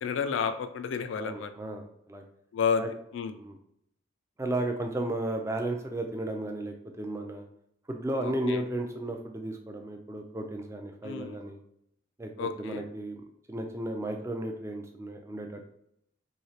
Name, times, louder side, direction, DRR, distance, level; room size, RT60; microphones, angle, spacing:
voice 1, 0.0-1.5 2.5-2.9 3.1-3.3 8.2-8.6 11.0-11.4 12.4-12.8, left 6 dB, 75° left, 9 dB, 0.3 m, -31 dB
voice 2, 1.2-2.2 2.8-2.9 3.4-3.6 4.4-7.5 7.9-11.6 12.2-15.6, right 1 dB, 15° right, 3 dB, 0.3 m, -34 dB
3.1 x 2.7 x 2.7 m, 0.74 s
head